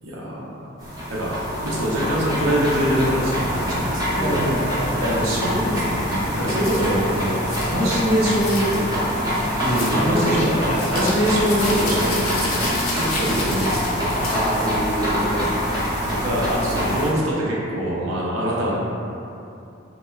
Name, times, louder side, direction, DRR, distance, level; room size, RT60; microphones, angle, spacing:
voice 1, 0.0-0.7 1.1-1.3 1.6-4.4 5.0-10.6 10.9-14.0 16.0-18.8, equal, 80° right, -6 dB, 0.5 m, -24 dB
sound 1, 0.8-17.1, equal, 15° right, 0.5 m, -25 dB
voice 2, 4.2-5.0 9.6-11.3 14.2-15.7, right 1 dB, 30° left, -8 dB, 0.5 m, -26 dB
sound 2, 6.6-7.0 7.5-7.7 8.3-8.8 9.6-10.0 10.7-15.0, left 2 dB, 90° left, 0.5 m, -31 dB
2.9 x 2.0 x 2.3 m, 2.7 s
head